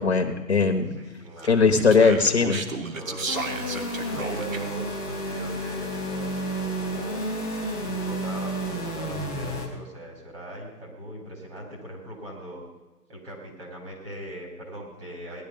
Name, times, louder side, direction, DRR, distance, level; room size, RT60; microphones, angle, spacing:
voice 1, 0.0-0.9 1.5-2.6, left 4 dB, 40° left, 5 dB, 1.1 m, -19 dB
voice 2, 0.9-1.7 2.9-7.3 7.8-12.6 13.1-15.4, equal, 35° right, 0 dB, 4.6 m, -40 dB
Speech, 1.4-4.8, right 3 dB, 55° right, 1.4 m, -33 dB
sound 1, 3.3-9.7, right 1 dB, 15° right, 1.5 m, -31 dB
17.5 x 11.5 x 5.4 m, 1.1 s
hypercardioid pair, 175°, 49 cm